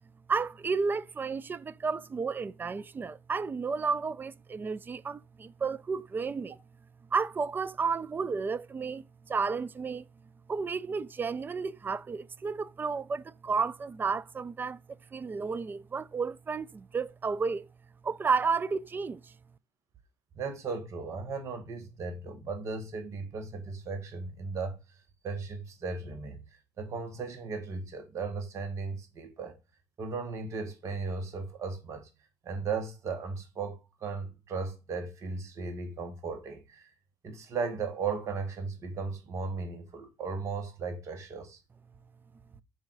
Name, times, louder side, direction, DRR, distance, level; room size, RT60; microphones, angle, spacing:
voice 1, 0.3-6.6 7.1-10.1 10.5-14.8 15.1-17.7 18.0-19.3, right 5 dB, 35° right, 0.5 m, -32 dB
voice 2, 20.4-24.8 25.2-26.4 26.8-29.6 30.0-32.1 32.4-36.9 37.2-41.6, right 4 dB, 55° right, 1.8 m, -36 dB
5.6 x 3.9 x 4.8 m
supercardioid pair, 65°, 6 cm